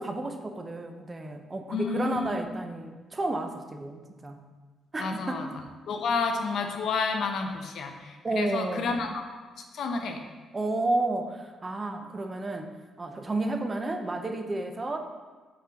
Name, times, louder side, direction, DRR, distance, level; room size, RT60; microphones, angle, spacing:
voice 1, 0.0-4.4 4.9-5.5 8.2-8.9 10.5-15.0, right 2 dB, 20° right, 5 dB, 0.6 m, -31 dB
voice 2, 1.7-2.4 5.0-5.5 5.9-9.2 9.7-10.2, left 4 dB, 65° left, 4 dB, 0.8 m, -30 dB
5.7 x 4.2 x 6.3 m, 1.4 s
cardioid pair, 145°, 0 cm